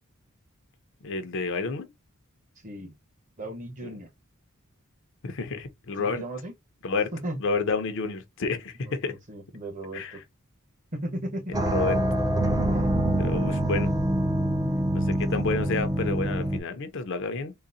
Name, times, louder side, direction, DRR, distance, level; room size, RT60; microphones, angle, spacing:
voice 1, 1.0-1.9 3.8-4.0 5.2-6.2 6.8-7.1 7.4-9.2 9.9-10.2 11.5-12.0 13.2-13.9 14.9-17.5, left 4 dB, 60° left, 0.6 m, -30 dB
voice 2, 2.6-2.9 3.4-4.1 6.0-6.5 7.1-7.4 8.8-10.2 10.9-11.5 12.7-13.1, right 1 dB, 35° right, 1.0 m, -36 dB
sound 1, 11.5-16.6, right 1 dB, 15° right, 0.5 m, -25 dB
3.8 x 2.1 x 2.5 m
head